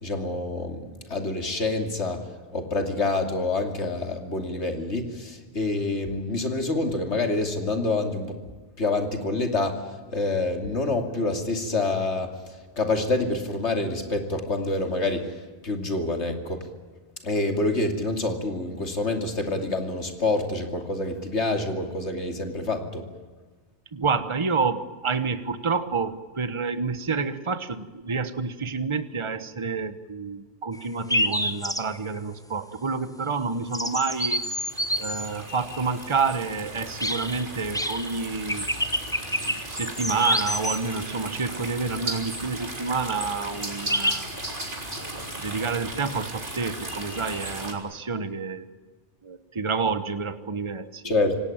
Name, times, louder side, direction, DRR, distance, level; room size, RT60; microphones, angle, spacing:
voice 1, 0.0-8.4 8.8-9.8 10.1-12.3 12.8-15.4 15.6-16.7 17.2-23.1 51.0-51.4, left 2 dB, 80° left, 5 dB, 3.1 m, -27 dB
voice 2, 23.9-34.4 35.0-38.7 39.4-44.3 45.0-48.7 49.2-51.0, right 4 dB, 25° right, 11 dB, 1.2 m, -29 dB
sound 1, 30.7-30.8 31.1-32.2 33.7-35.3 37.0-37.5 37.7-38.2 38.5-40.8 43.9-44.2, equal, 5° left, 0.9 m, -27 dB
sound 2, 33.8-47.7, right 1 dB, 50° right, 4.0 m, -36 dB
27.0 x 18.0 x 8.8 m, 1.3 s
omnidirectional pair, 1.2 m